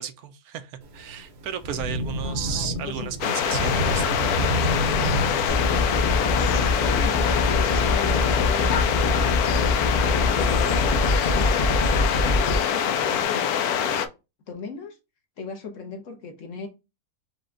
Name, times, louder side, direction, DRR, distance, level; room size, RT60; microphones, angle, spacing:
voice 1, 0.0-4.2, right 9 dB, 85° right, 1.1 m, -34 dB
Thunder / Rain, 0.8-13.2, equal, 55° right, 0.9 m, -32 dB
voice 2, 2.2-3.8 6.2-7.2 7.6-9.6 10.2-12.0 12.3-13.4 14.5-15.0 15.4-16.7, left 4 dB, 60° left, 1.2 m, -37 dB
sound 1, 3.2-14.1, left 8 dB, 85° left, 1.1 m, -24 dB
sound 2, 5.5-12.6, left 3 dB, 40° left, 0.6 m, -24 dB
5.0 x 2.2 x 3.7 m
omnidirectional pair, 1.6 m